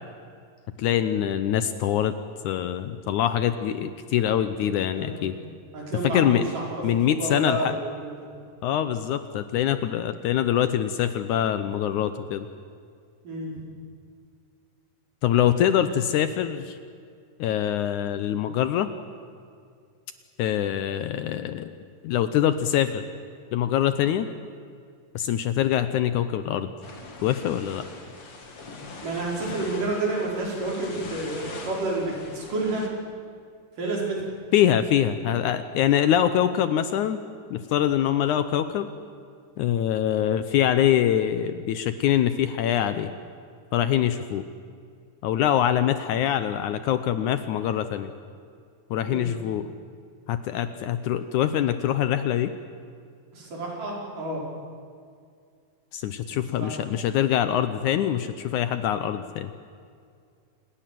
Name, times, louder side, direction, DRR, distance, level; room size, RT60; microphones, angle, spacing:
voice 1, 0.8-2.1 2.4-5.4 6.0-6.5 6.8-7.8 8.6-12.5 15.2-16.8 17.4-18.9 20.4-21.7 22.0-23.0 23.5-24.3 25.2-26.7 27.2-27.9 34.5-37.2 37.5-38.9 39.6-43.1 43.7-44.5 45.2-48.1 48.9-49.7 50.3-52.5 55.9-59.5, left 10 dB, 75° left, 11 dB, 2.0 m, -24 dB
voice 2, 4.9-5.3 5.7-6.8 7.2-8.2 13.2-13.5 29.0-32.9 33.8-34.3 35.2-35.3 49.0-49.3 53.3-54.4 56.3-56.8, right 2 dB, 65° right, -2 dB, 6.5 m, -30 dB
sound 1, 26.8-32.9, left 3 dB, 40° left, 3.2 m, -42 dB
27.5 x 20.5 x 7.7 m, 2.3 s
omnidirectional pair, 4.0 m